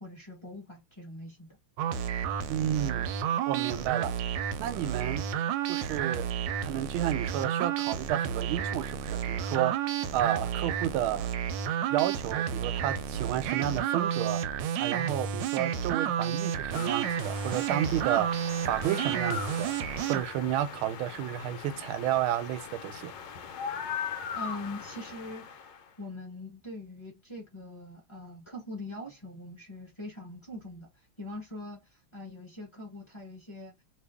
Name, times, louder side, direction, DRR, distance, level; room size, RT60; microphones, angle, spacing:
voice 1, 0.0-1.6 24.3-25.6 26.0-30.9 31.2-31.8 32.1-33.7, left 1 dB, 20° left, 0.9 m, -42 dB
sound 1, 1.8-20.2, right 8 dB, 75° right, 1.2 m, -31 dB
voice 2, 2.5-3.1 3.5-4.1 4.6-5.2 5.7-6.3 6.6-9.8 10.1-11.3 11.9-14.4 14.8-18.4 18.7-19.7 20.1-23.1, right 11 dB, 90° right, 1.4 m, -31 dB
sound 2, 16.7-25.9, left 6 dB, 70° left, 1.3 m, -40 dB
2.9 x 2.6 x 3.4 m
omnidirectional pair, 2.2 m